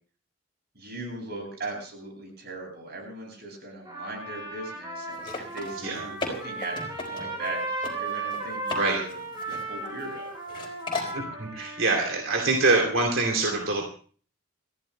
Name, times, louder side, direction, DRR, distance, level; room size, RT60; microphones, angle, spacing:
voice 1, 0.7-9.2 9.5-10.3, right 2 dB, 55° right, 1 dB, 7.9 m, -38 dB
Trumpet, 3.8-12.3, right 2 dB, 20° right, 7.5 m, -35 dB
sound 1, 5.1-7.5 7.8-7.9 8.3-8.8 9.1-10.1 10.5-11.2, left 3 dB, 25° left, 4.0 m, -35 dB
voice 2, 11.1-13.9, right 3 dB, 90° right, 1 dB, 2.9 m, -25 dB
29.5 x 14.5 x 2.2 m, 0.42 s
head